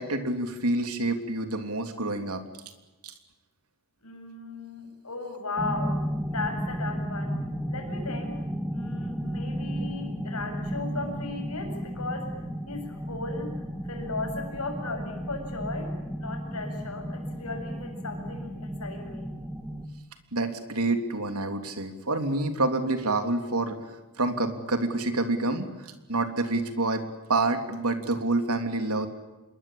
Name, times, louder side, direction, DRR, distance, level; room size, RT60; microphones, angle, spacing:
voice 1, 0.0-2.4 3.0-3.1 20.3-23.8 24.2-29.1, right 2 dB, 85° right, 7 dB, 3.3 m, -28 dB
voice 2, 4.0-6.0 6.3-7.4 7.7-8.4 8.7-12.3 12.7-15.9 16.2-19.3, left 3 dB, 90° left, 4 dB, 7.4 m, -36 dB
sound 1, 5.6-19.9, equal, 5° right, 2.4 m, -33 dB
27.0 x 22.0 x 8.9 m, 1.1 s
head